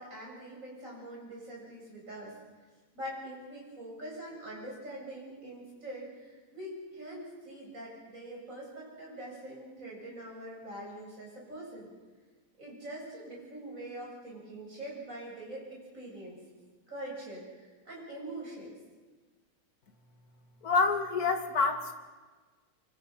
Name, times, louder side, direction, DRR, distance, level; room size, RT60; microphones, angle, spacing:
voice 1, 0.0-2.3 2.9-11.9 12.6-15.7 15.9-16.4 16.9-18.7, right 1 dB, 35° right, -4 dB, 8.4 m, -43 dB
voice 2, 20.6-21.9, left 4 dB, 45° left, 6 dB, 2.2 m, -27 dB
26.0 x 24.5 x 5.7 m, 1.3 s
omnidirectional pair, 2.3 m